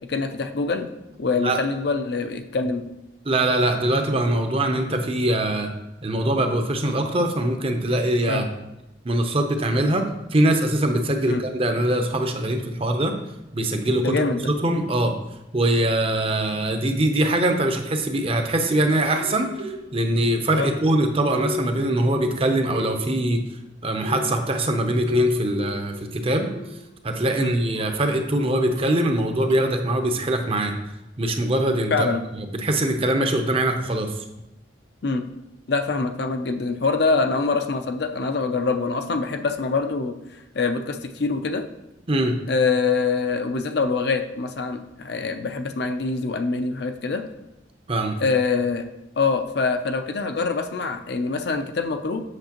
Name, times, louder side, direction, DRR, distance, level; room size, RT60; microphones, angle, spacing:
voice 1, 0.1-0.9 1.2-2.9 8.3-8.4 11.3-11.4 14.0-14.5 20.6-20.7 27.4-27.5 31.9-32.2 35.0-35.3 35.7-41.7 42.5-47.2 48.2-48.8 49.2-52.2, left 4 dB, 60° left, 7 dB, 0.5 m, -24 dB
voice 2, 3.3-5.7 6.0-8.5 9.0-10.1 10.3-13.2 13.5-14.1 14.5-15.1 15.5-23.4 23.8-26.5 27.0-30.7 31.2-32.1 32.3-34.1 42.1-42.4 47.9-48.2, right 1 dB, 30° right, 5 dB, 0.6 m, -22 dB
sound 1, 13.8-13.9 15.6-16.3 17.5-18.1 18.6-20.2 20.5-22.5 22.8-23.4 24.0-27.0 27.5-28.1 28.8-29.9, left 3 dB, 70° right, 1.1 m, -34 dB
7.9 x 6.5 x 2.9 m, 0.94 s
head